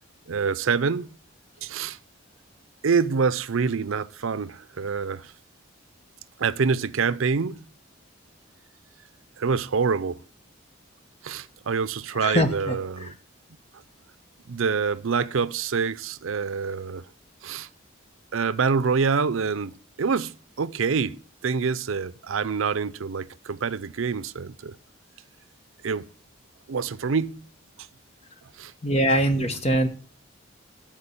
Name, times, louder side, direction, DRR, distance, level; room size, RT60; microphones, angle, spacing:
voice 1, 0.3-1.2 1.6-2.0 2.8-5.3 6.4-7.6 9.4-10.2 11.2-13.1 14.5-17.0 17.4-17.7 18.3-24.8 25.8-26.1 26.7-27.5 27.8-27.9 28.6-28.7 29.2-29.6, right 5 dB, 80° right, 0.5 m, -26 dB
voice 2, 12.2-12.7 28.8-29.9, equal, 30° left, 1.2 m, -22 dB
13.0 x 4.6 x 7.0 m
head